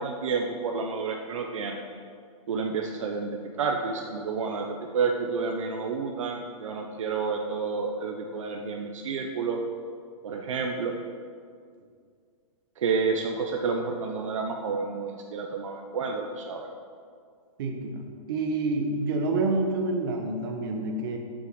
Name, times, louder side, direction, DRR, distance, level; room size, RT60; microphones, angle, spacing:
voice 1, 0.0-1.8 2.5-3.3 3.6-9.6 10.2-11.0 12.8-16.7, right 4 dB, 65° right, 3 dB, 0.9 m, -30 dB
voice 2, 17.6-21.2, right 2 dB, 40° right, 3 dB, 1.3 m, -28 dB
8.1 x 6.2 x 8.0 m, 2.2 s
hypercardioid pair, 170°, 18 cm